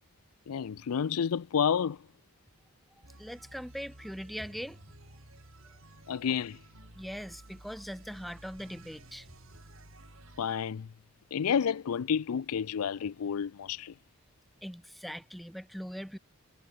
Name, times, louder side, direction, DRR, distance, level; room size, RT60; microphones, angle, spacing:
voice 1, 0.5-2.0 6.1-6.6 10.4-10.9 11.3-13.9, left 7 dB, 85° left, 0.4 m, -30 dB
sound 1, 3.0-10.6, right 1 dB, 70° right, 5.6 m, -53 dB
voice 2, 3.2-4.8 6.9-9.3 14.6-16.2, equal, ahead, 3.8 m, -41 dB
head